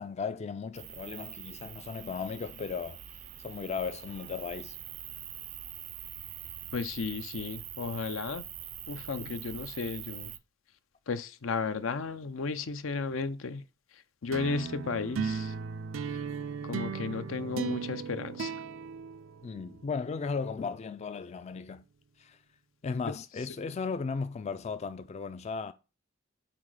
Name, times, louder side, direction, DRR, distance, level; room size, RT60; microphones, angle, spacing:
voice 1, 0.0-3.0 3.4-4.8 19.4-21.9 22.2-22.4 22.8-25.7, left 5 dB, 35° left, 0.3 m, -36 dB
sound 1, 0.7-10.4, right 11 dB, 40° right, 0.4 m, -44 dB
voice 2, 6.7-8.4 8.9-10.3 11.1-13.6 14.2-15.5 16.6-18.5, left 4 dB, 85° left, 0.6 m, -34 dB
sound 2, 14.3-19.9, right 6 dB, 90° right, 0.5 m, -36 dB
5.9 x 4.5 x 4.8 m
head